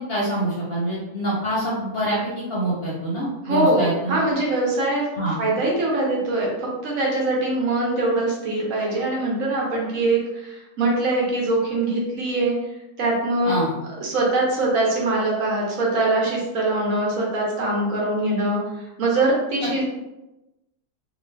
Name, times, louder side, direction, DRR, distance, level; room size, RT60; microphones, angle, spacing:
voice 1, 0.1-2.2 2.5-4.2 5.1-5.4 13.4-13.7, right 1 dB, 50° left, -6 dB, 0.9 m, -25 dB
voice 2, 3.4-5.1 5.4-12.6 13.0-13.6 14.0-18.6 19.0-19.8, right 2 dB, 65° right, -3 dB, 1.1 m, -22 dB
2.9 x 2.4 x 3.2 m, 0.98 s
omnidirectional pair, 1.7 m